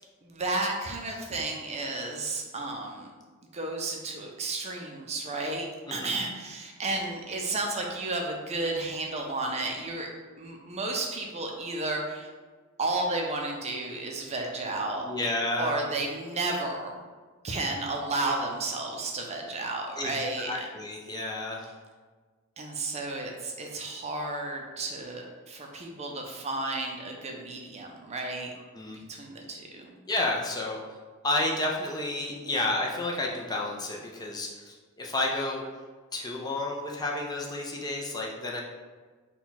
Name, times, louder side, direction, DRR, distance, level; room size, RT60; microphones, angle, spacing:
voice 1, 0.2-3.1 3.5-10.1 10.4-12.3 12.8-15.1 15.6-17.0 17.4-20.5 22.6-28.5 29.1-30.0, right 2 dB, 30° right, 1 dB, 0.5 m, -32 dB
voice 2, 15.0-15.7 20.0-20.1 20.5-21.7 28.7-29.0 30.1-31.0 31.2-35.6 36.1-38.6, left 2 dB, 20° left, -1 dB, 0.4 m, -31 dB
4.3 x 2.3 x 3.9 m, 1.4 s
head